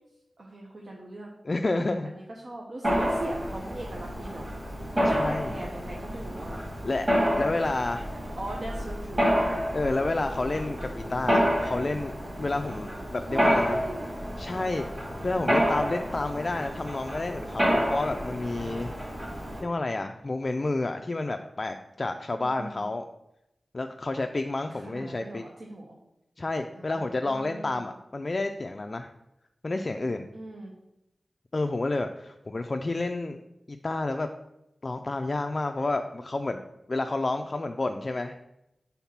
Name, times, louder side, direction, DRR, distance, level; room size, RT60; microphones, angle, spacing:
voice 1, 0.4-1.3 1.7-4.5 4.9-6.6 7.3-7.6 8.1-9.6 13.3-14.1 22.4-22.9 24.7-26.0 26.7-27.9 30.3-30.7, right 2 dB, 60° right, -2 dB, 0.9 m, -40 dB
voice 2, 1.4-2.1 5.1-5.5 6.8-7.1 7.4-8.1 9.7-12.1 12.4-13.8 14.4-14.9 15.2-18.9 19.6-23.0 23.7-25.4 26.4-29.1 29.6-30.3 31.5-33.4 33.7-34.3 34.8-36.6 36.9-38.4, left 2 dB, 40° left, 6 dB, 0.3 m, -30 dB
Mechanisms, 2.8-19.6, equal, 25° right, 2.2 m, -29 dB
5.7 x 3.6 x 5.9 m, 0.88 s
wide cardioid pair, 100°, 0 cm